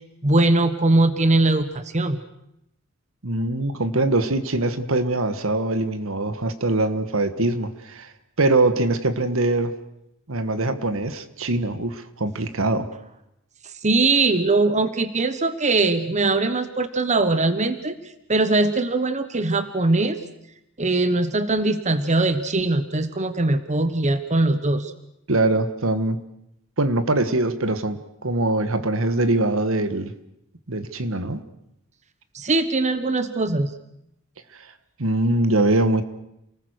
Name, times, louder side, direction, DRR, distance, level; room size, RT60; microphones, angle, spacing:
voice 1, 0.2-2.2 13.8-18.0 18.3-20.2 20.8-24.9 32.3-33.8, right 2 dB, 35° right, 10 dB, 1.2 m, -21 dB
voice 2, 3.2-8.1 8.4-9.7 10.3-12.9 25.3-26.2 26.8-30.1 30.7-31.4 35.0-36.0, right 2 dB, 70° right, 11 dB, 1.6 m, -22 dB
28.5 x 19.5 x 6.5 m, 0.81 s
head